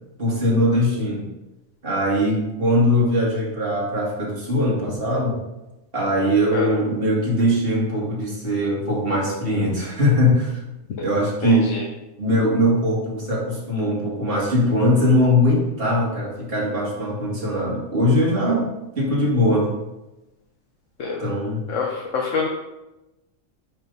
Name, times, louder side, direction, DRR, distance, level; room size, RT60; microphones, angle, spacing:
voice 1, 0.2-1.3 1.8-5.4 5.9-10.6 11.0-11.7 12.2-19.7 21.2-21.6, left 1 dB, 45° right, -4 dB, 2.1 m, -21 dB
voice 2, 11.4-11.8 21.0-21.2 21.7-21.9 22.1-22.5, left 5 dB, 70° left, -1 dB, 1.2 m, -25 dB
9.4 x 3.8 x 4.0 m, 0.99 s
omnidirectional pair, 1.4 m